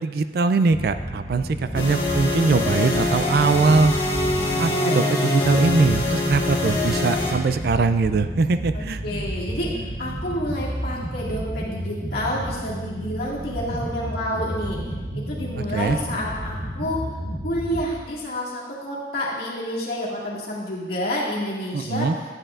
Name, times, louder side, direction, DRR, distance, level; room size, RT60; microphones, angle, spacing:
voice 1, 0.0-3.9 4.6-9.0 15.6-16.0 21.7-22.2, right 4 dB, 55° right, 10 dB, 0.3 m, -21 dB
sound 1, 0.7-17.9, right 1 dB, 35° right, 0.8 m, -31 dB
sound 2, 1.7-7.3, left 2 dB, 30° left, 2.1 m, -24 dB
voice 2, 8.7-9.7 10.0-14.8 15.1-17.0 17.4-22.1, equal, 55° left, -6 dB, 2.0 m, -29 dB
10.5 x 8.7 x 2.5 m, 1.3 s
head